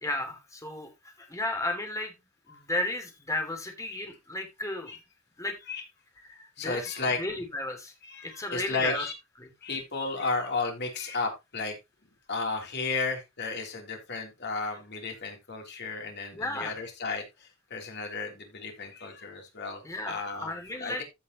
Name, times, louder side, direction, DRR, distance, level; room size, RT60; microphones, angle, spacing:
voice 1, 0.0-0.9 1.2-2.1 2.5-4.9 5.4-5.6 6.2-6.9 7.2-7.9 8.2-9.0 9.4-9.5 16.3-16.7 19.8-20.1 20.4-21.0, left 2 dB, 15° left, 4 dB, 2.6 m, -33 dB
voice 2, 6.6-7.2 8.0-9.1 9.6-11.8 12.3-21.0, left 3 dB, 55° left, 2 dB, 3.4 m, -33 dB
15.0 x 5.7 x 3.0 m, 0.23 s
head